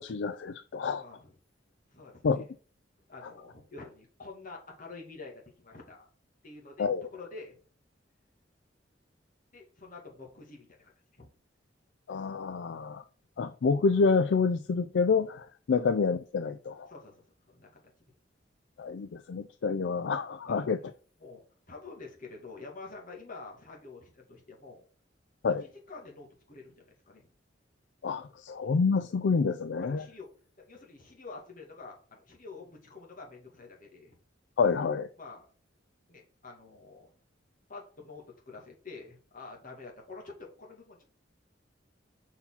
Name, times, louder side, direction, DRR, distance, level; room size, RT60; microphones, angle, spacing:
voice 1, 0.0-1.0 2.2-2.5 3.2-3.3 6.8-7.1 12.1-13.0 13.4-16.9 18.8-20.8 25.4-25.7 28.0-30.1 34.6-35.1, left 5 dB, 70° left, 0.4 m, -28 dB
voice 2, 1.0-1.3 1.9-2.5 3.1-6.1 6.4-7.6 9.5-11.3 15.7-15.8 16.9-17.8 20.4-20.7 21.2-21.4 21.7-24.9 25.6-27.3 29.8-30.3 30.6-34.2 35.2-35.5 36.1-37.1 37.7-41.0, left 3 dB, 45° left, 2.1 m, -48 dB
5.6 x 4.4 x 5.6 m
head